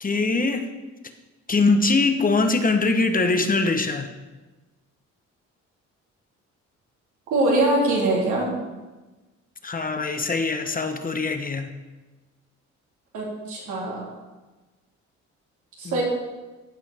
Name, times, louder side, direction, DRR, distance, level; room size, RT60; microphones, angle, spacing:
voice 1, 0.0-0.7 1.5-4.1 9.6-11.7 15.8-16.0, left 3 dB, 30° left, 7 dB, 1.0 m, -22 dB
voice 2, 7.3-8.6 13.1-14.1 15.8-16.0, right 2 dB, 90° right, -4 dB, 3.5 m, -23 dB
14.5 x 5.6 x 4.3 m, 1.2 s
cardioid pair, 90°, 30 cm